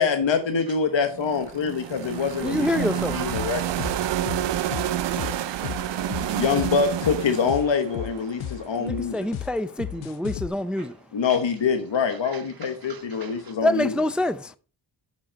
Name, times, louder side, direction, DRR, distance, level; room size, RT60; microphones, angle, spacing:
voice 1, 0.0-3.6 6.3-9.3 11.1-13.9, left 6 dB, 65° left, 1.2 m, -25 dB
sound 1, 1.1-9.1, right 12 dB, 65° right, 0.5 m, -29 dB
sound 2, 2.0-7.3, left 3 dB, 45° left, 2.4 m, -47 dB
voice 2, 2.4-3.2 8.8-11.0 13.6-14.5, left 1 dB, ahead, 0.4 m, -26 dB
sound 3, 3.1-10.5, left 11 dB, 85° left, 0.6 m, -34 dB
voice 3, 5.0-6.6 10.1-10.2 10.8-11.0 11.3-11.4 12.1-13.6, right 6 dB, 45° right, 1.0 m, -46 dB
6.8 x 5.5 x 5.1 m
cardioid pair, 50°, 48 cm